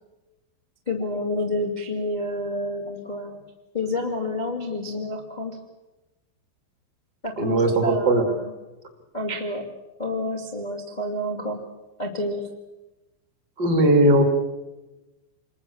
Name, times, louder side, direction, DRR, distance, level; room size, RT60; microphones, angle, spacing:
voice 1, 0.8-3.4 3.7-5.6 7.2-8.5 9.1-9.6 10.0-11.6 12.0-12.4, left 1 dB, 80° left, 1 dB, 0.4 m, -29 dB
voice 2, 7.4-8.2 13.6-14.2, right 1 dB, 30° right, 5 dB, 1.9 m, -18 dB
27.5 x 21.5 x 7.1 m, 1.1 s
omnidirectional pair, 5.7 m